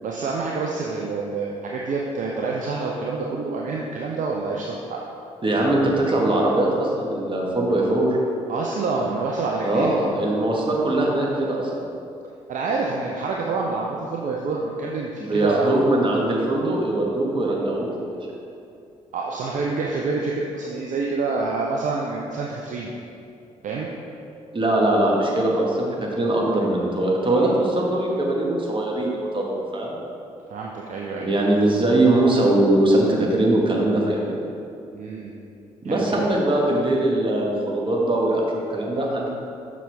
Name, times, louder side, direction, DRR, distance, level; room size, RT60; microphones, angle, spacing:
voice 1, 0.0-5.0 8.5-10.0 12.5-15.7 19.1-22.9 23.6-23.9 30.5-31.3 34.9-35.4 35.8-36.3, right 3 dB, 50° right, -2 dB, 0.7 m, -27 dB
voice 2, 5.4-8.2 9.6-11.7 15.2-18.2 24.5-30.0 31.2-34.4 35.8-39.3, right 1 dB, 30° right, -2 dB, 1.5 m, -21 dB
7.1 x 5.9 x 3.5 m, 2.7 s
hypercardioid pair, 45°, 16 cm